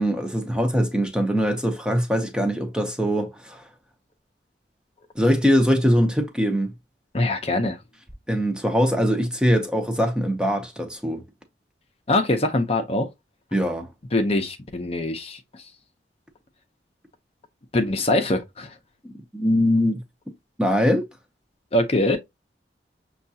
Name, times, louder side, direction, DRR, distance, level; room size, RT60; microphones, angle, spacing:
voice 1, 0.0-3.6 5.2-6.7 8.3-11.2 13.5-13.9 19.0-20.0 20.6-21.0, equal, 5° right, 0.6 m, -22 dB
voice 2, 7.1-7.8 12.1-13.1 14.1-15.4 17.7-18.7 21.7-22.2, left 1 dB, 35° left, 0.6 m, -23 dB
6.4 x 2.3 x 2.7 m
head